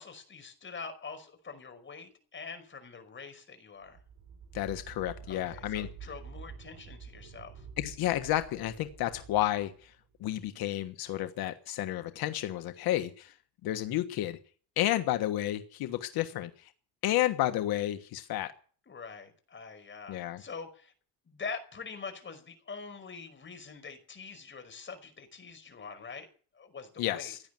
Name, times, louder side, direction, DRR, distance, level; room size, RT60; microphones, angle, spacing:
voice 1, 0.0-4.0 5.3-7.7 18.9-20.9 21.3-26.3 26.5-27.3, left 5 dB, 30° left, 7 dB, 5.3 m, -44 dB
sound 1, 3.8-10.3, right 7 dB, 75° right, 6.5 m, -48 dB
voice 2, 4.5-6.1 7.8-9.9 10.2-13.3 13.6-14.4 14.8-16.7 17.0-18.5 20.1-20.4 27.0-27.4, left 14 dB, 85° left, 8 dB, 1.4 m, -31 dB
16.5 x 10.5 x 7.7 m, 0.43 s
cardioid pair, 115°, 36 cm